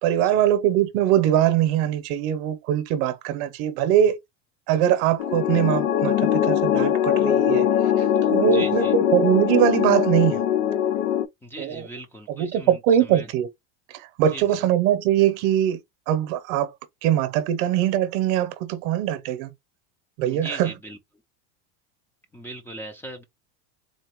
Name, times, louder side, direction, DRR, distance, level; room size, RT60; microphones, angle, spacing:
voice 1, 0.0-4.2 4.7-7.6 8.2-10.4 11.6-11.9 12.4-13.5 14.2-15.8 16.1-16.7 17.0-19.5 20.2-20.7, right 11 dB, 60° right, 0.8 m, -22 dB
sound 1, 5.2-11.2, left 10 dB, 85° left, 0.7 m, -21 dB
voice 2, 8.4-8.9 11.4-13.3 14.3-14.6 20.3-21.0 22.3-23.2, right 2 dB, 5° left, 0.5 m, -39 dB
3.9 x 2.8 x 3.0 m
supercardioid pair, 145°, 36 cm